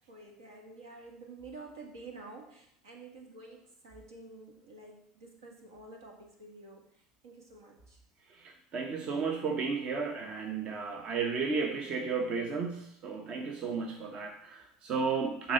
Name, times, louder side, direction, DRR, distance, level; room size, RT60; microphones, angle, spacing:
voice 1, 0.1-6.9 7.2-8.0, right 3 dB, 80° right, 1 dB, 1.8 m, -49 dB
voice 2, 8.4-15.5, right 5 dB, 45° right, 4 dB, 0.9 m, -33 dB
6.5 x 4.0 x 6.4 m, 0.71 s
hypercardioid pair, 75°, 2 cm